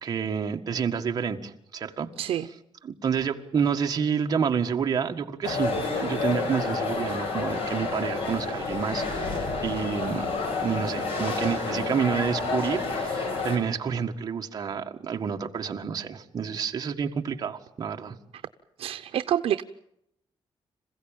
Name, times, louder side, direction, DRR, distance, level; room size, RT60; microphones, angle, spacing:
voice 1, 0.0-2.1 2.8-18.1, right 6 dB, 40° right, 3 dB, 1.7 m, -29 dB
sound 1, 5.4-13.6, left 3 dB, 80° left, 6.0 m, -29 dB
sound 2, 7.9-11.1, left 2 dB, 60° left, 7.4 m, -43 dB
voice 2, 18.8-19.6, right 10 dB, 85° right, 8 dB, 0.8 m, -27 dB
27.0 x 16.0 x 9.0 m, 0.77 s
wide cardioid pair, 170°, 10 cm